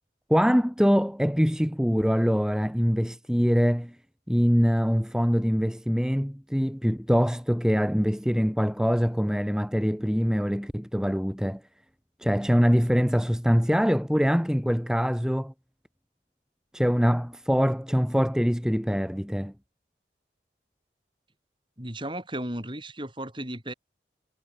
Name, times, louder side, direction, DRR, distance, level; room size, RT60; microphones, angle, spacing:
voice 1, 0.3-4.0 4.3-11.6 12.2-15.5 16.7-19.5, equal, 5° right, 3.7 m, -24 dB
voice 2, 21.8-23.7, right 1 dB, 25° right, 7.4 m, -35 dB
head